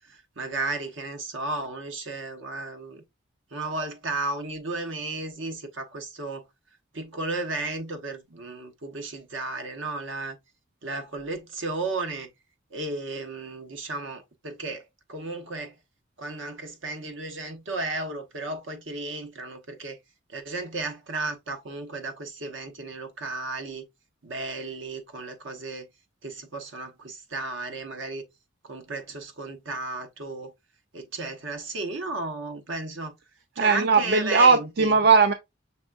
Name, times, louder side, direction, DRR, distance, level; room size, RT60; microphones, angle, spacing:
voice 1, 0.1-3.0 3.5-6.4 6.9-10.4 10.8-12.3 12.7-15.7 16.2-20.0 20.3-23.8 24.2-25.8 26.2-28.2 28.6-30.5 30.9-33.1 33.5-35.0, right 3 dB, 75° right, 1.0 m, -34 dB
voice 2, 33.6-35.3, right 4 dB, 50° right, 0.4 m, -19 dB
6.0 x 3.4 x 2.4 m
head